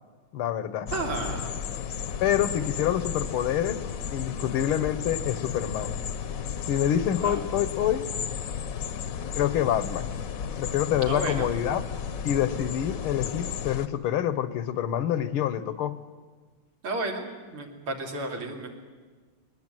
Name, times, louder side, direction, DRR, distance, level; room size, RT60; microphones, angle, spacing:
voice 1, 0.3-0.9 2.2-3.8 4.1-5.9 6.7-8.1 9.3-10.1 10.6-11.8 12.2-16.0, left 11 dB, 85° left, 14 dB, 1.9 m, -26 dB
sound 1, 0.9-13.9, left 7 dB, 55° left, 1.0 m, -34 dB
voice 2, 0.9-1.6 7.2-7.4 11.0-11.5 16.8-17.3 17.5-18.7, right 2 dB, 90° right, 2 dB, 3.7 m, -32 dB
22.0 x 19.5 x 9.1 m, 1.4 s
omnidirectional pair, 2.3 m